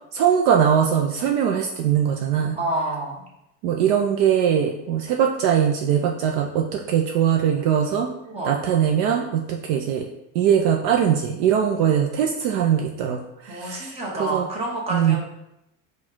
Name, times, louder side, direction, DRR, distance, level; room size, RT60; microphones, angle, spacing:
voice 1, 0.1-2.6 3.6-8.1 8.4-10.0 10.3-14.5 14.9-15.2, right 8 dB, 60° right, 2 dB, 0.5 m, -21 dB
voice 2, 2.6-3.2 8.3-8.6 13.5-15.2, right 2 dB, 15° right, -4 dB, 1.0 m, -28 dB
4.3 x 2.4 x 4.4 m, 0.85 s
supercardioid pair, 150°, 37 cm